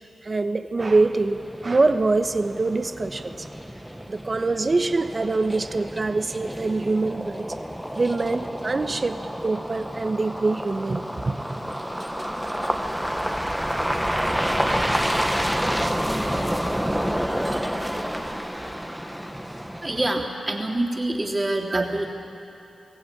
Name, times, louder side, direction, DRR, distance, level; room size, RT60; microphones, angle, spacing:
voice 1, 0.2-3.5 4.1-7.4 7.9-11.6 21.7-21.8, right 3 dB, 40° right, 9 dB, 1.1 m, -24 dB
sound 1, 0.8-20.1, equal, 5° right, 1.2 m, -29 dB
voice 2, 19.8-22.1, right 1 dB, 25° right, 1 dB, 3.1 m, -26 dB
22.5 x 16.5 x 9.0 m, 2.7 s
cardioid pair, 65°, 0 cm